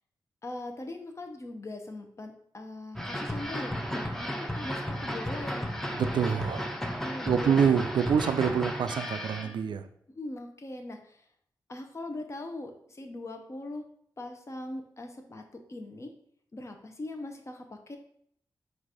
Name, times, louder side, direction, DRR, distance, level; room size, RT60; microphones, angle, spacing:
voice 1, 0.4-5.7 6.8-7.6 9.4-9.5 10.1-11.2 11.7-13.8 14.2-16.1 16.5-18.0, left 2 dB, 40° left, 4 dB, 0.8 m, -41 dB
sound 1, 2.9-9.5, equal, 5° left, 0.6 m, -34 dB
voice 2, 5.9-6.7 7.3-9.9, right 7 dB, 75° right, 9 dB, 0.3 m, -26 dB
4.0 x 2.5 x 4.7 m, 0.68 s
cardioid pair, 60°, 8 cm